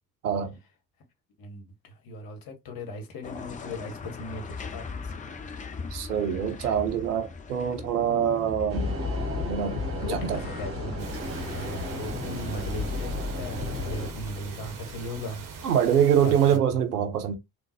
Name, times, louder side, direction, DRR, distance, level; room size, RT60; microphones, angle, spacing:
voice 1, 1.4-5.2 10.0-15.5 16.2-16.6, equal, 50° left, 1.2 m, -38 dB
sound 1, 3.2-15.7, left 5 dB, 20° left, 0.4 m, -37 dB
voice 2, 5.9-9.0 9.5-10.4 15.6-17.3, right 9 dB, 80° right, 0.7 m, -25 dB
sound 2, 8.7-14.1, equal, 30° right, 1.5 m, -35 dB
sound 3, 11.0-16.6, right 5 dB, 45° right, 1.0 m, -42 dB
3.7 x 2.4 x 2.7 m
figure-of-eight pair, 50°, 46 cm